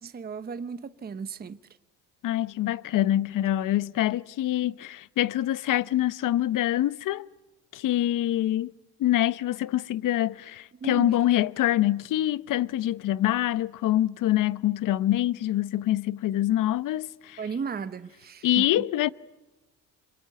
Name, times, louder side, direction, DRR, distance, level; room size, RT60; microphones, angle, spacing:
voice 1, 0.0-1.6 10.8-11.2 17.4-18.8, right 5 dB, 25° right, 0.9 m, -35 dB
voice 2, 2.2-7.3 7.7-8.7 9.0-17.4 18.4-19.1, left 13 dB, 60° left, 0.9 m, -25 dB
27.0 x 22.5 x 9.7 m
supercardioid pair, 85°, 36 cm